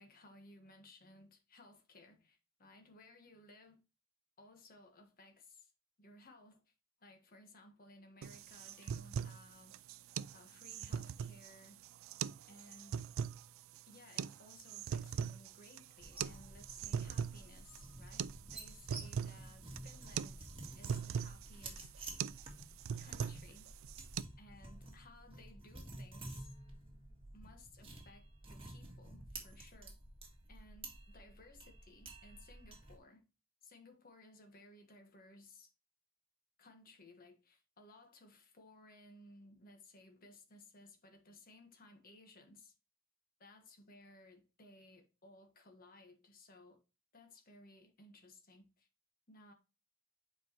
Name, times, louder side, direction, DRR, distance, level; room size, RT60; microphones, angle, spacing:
voice 1, 0.0-3.8 4.4-5.7 6.0-6.7 7.0-9.8 10.3-11.8 12.5-13.0 13.9-20.5 20.7-22.1 23.0-23.7 24.4-26.5 27.3-30.0 30.5-33.2 33.6-35.7 36.6-42.7 43.4-46.8 47.1-48.9 49.3-49.5, left 2 dB, 45° left, 1.4 m, -60 dB
sound 1, 8.2-24.2, right 7 dB, 85° right, 0.3 m, -42 dB
sound 2, 16.0-33.0, right 2 dB, 30° right, 1.6 m, -51 dB
7.7 x 4.6 x 3.0 m
head